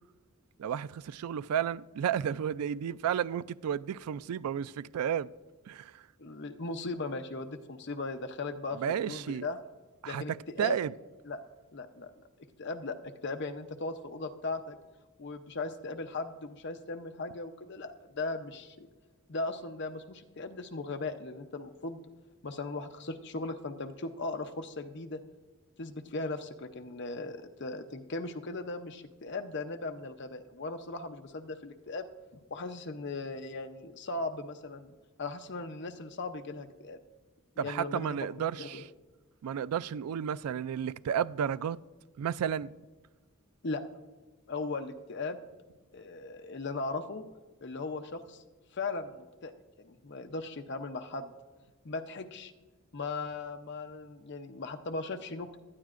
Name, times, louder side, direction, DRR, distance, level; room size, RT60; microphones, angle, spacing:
voice 1, 0.6-5.3 5.7-6.0 8.8-9.5 10.0-10.2 10.6-10.9 37.6-38.9 39.4-41.8 42.2-42.7, right 8 dB, 85° right, 0.3 m, -32 dB
voice 2, 6.2-8.8 9.0-9.6 10.1-10.8 11.2-11.4 11.7-12.1 12.6-13.0 13.2-14.8 15.2-18.9 19.3-22.0 22.4-25.2 25.8-32.0 32.5-34.9 35.2-37.0 37.6-38.2 38.5-38.8 43.6-43.8 44.5-45.4 45.9-47.2 47.6-48.4 48.7-49.5 49.8-51.3 51.8-52.5 52.9-55.6, left 3 dB, 50° left, 0.7 m, -38 dB
18.5 x 12.0 x 2.5 m
head